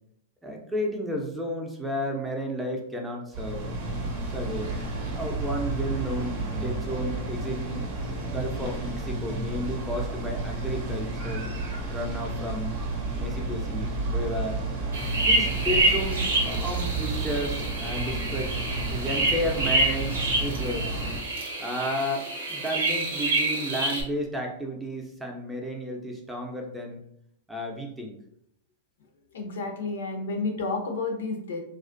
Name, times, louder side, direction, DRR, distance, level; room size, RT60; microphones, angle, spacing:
voice 1, 0.4-3.7 4.3-4.7 5.1-7.9 8.3-11.5 11.9-12.7 13.1-14.6 15.1-18.6 18.9-21.0 21.6-27.0 27.5-28.1, equal, 5° right, 0 dB, 0.5 m, -32 dB
sound 1, 3.3-21.2, right 2 dB, 55° right, 0.6 m, -31 dB
sound 2, 14.9-24.0, right 2 dB, 85° right, 0.7 m, -27 dB
voice 2, 29.3-31.6, left 3 dB, 85° left, 3 dB, 0.5 m, -30 dB
2.4 x 2.1 x 2.5 m, 0.71 s
hypercardioid pair, 120°, 0 cm